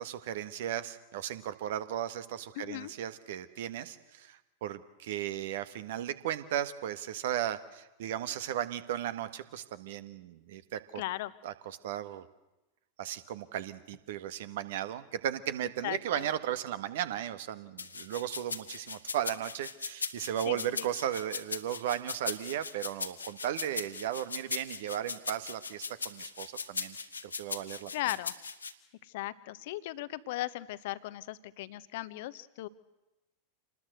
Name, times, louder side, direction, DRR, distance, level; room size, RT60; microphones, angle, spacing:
voice 1, 0.0-11.0 11.4-12.3 13.0-27.0 27.2-27.9, right 11 dB, 55° right, 13 dB, 1.6 m, -36 dB
voice 2, 2.6-2.9 10.9-11.3 15.8-16.3 20.5-20.9 27.9-28.3 29.0-32.7, left 16 dB, 50° left, 15 dB, 1.1 m, -37 dB
sound 1, 17.8-28.7, left 5 dB, 75° left, 1.6 m, -38 dB
27.5 x 20.0 x 7.9 m, 1.0 s
figure-of-eight pair, 90°, 0 cm